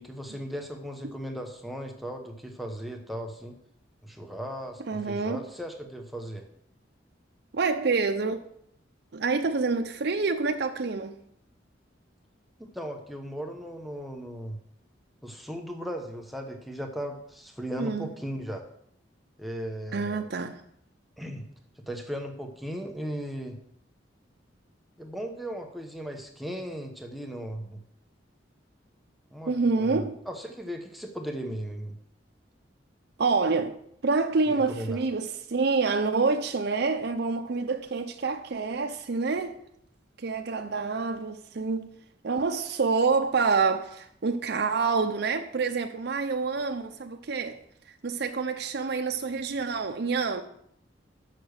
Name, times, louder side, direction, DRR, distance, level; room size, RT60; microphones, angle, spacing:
voice 1, 0.0-3.6 4.0-6.5 12.6-14.6 15.2-18.6 19.4-20.2 21.2-21.4 21.9-23.6 25.0-27.8 29.3-32.0 34.5-35.0, equal, ahead, 0.8 m, -37 dB
voice 2, 4.8-5.4 7.5-8.4 9.1-11.2 17.8-18.1 19.9-20.6 29.5-30.2 33.2-33.8 34.0-39.6 40.2-41.9 42.2-47.6 48.0-50.4, right 4 dB, 65° right, 0.6 m, -27 dB
6.7 x 6.0 x 6.5 m
head